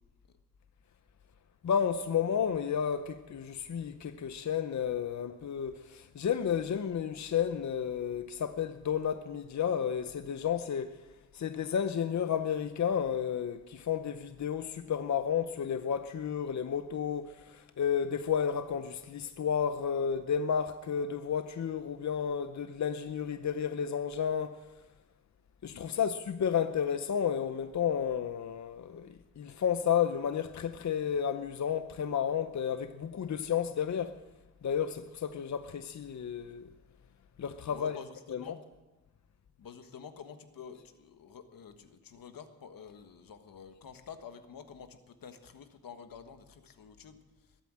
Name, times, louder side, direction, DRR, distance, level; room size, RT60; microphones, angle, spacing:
voice 1, 1.6-11.0 11.3-24.7 25.6-34.2 34.6-36.7 37.4-38.0 38.3-38.5, left 8 dB, 55° left, 0.7 m, -32 dB
voice 2, 25.7-26.1 37.7-38.6 39.6-47.2, left 7 dB, 85° left, 1.5 m, -49 dB
21.5 x 9.0 x 7.5 m
cardioid pair, 95°, 34 cm